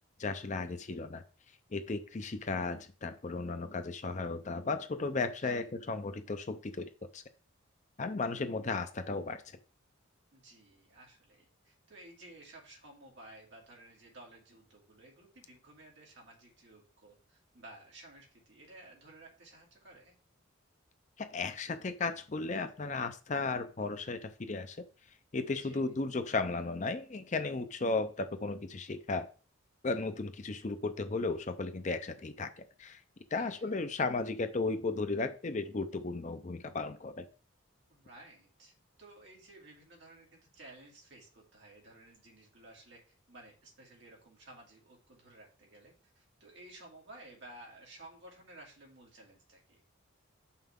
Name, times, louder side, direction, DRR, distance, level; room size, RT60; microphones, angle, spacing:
voice 1, 0.2-1.2 1.7-7.2 8.0-9.4 21.2-24.8 25.3-29.3 29.8-33.0 33.3-37.3, left 3 dB, 35° left, 9 dB, 0.5 m, -35 dB
voice 2, 10.3-20.2 25.5-25.8 33.3-33.6 37.9-38.7 39.0-43.0 43.3-49.8, right 2 dB, 55° right, -2 dB, 2.5 m, -55 dB
6.8 x 5.6 x 3.7 m, 0.37 s
head